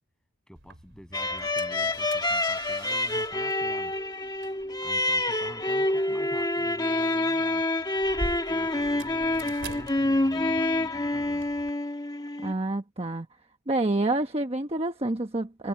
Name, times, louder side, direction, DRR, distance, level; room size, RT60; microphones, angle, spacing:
voice 1, 0.5-3.9 4.8-7.8 8.5-11.5, equal, 5° left, 7.4 m, -48 dB
sound 1, 0.6-11.7, right 2 dB, 55° right, 3.8 m, -44 dB
sound 2, 1.1-12.5, left 2 dB, 20° left, 1.7 m, -27 dB
voice 2, 12.4-13.3 13.7-15.7, right 2 dB, 30° right, 1.2 m, -28 dB
head